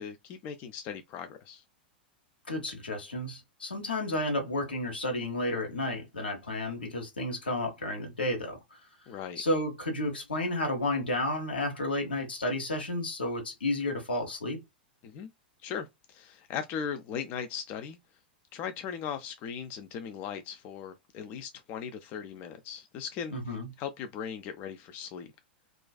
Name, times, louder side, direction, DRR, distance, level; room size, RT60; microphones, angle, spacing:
voice 1, 0.0-1.6 9.1-9.4 15.0-15.3 15.6-18.0 18.5-23.3 23.8-25.3, left 7 dB, 40° left, 0.4 m, -38 dB
voice 2, 2.5-8.8 9.4-14.6 23.3-23.7, left 1 dB, 80° left, 0.9 m, -32 dB
2.4 x 2.2 x 2.2 m
figure-of-eight pair, 100°, 5 cm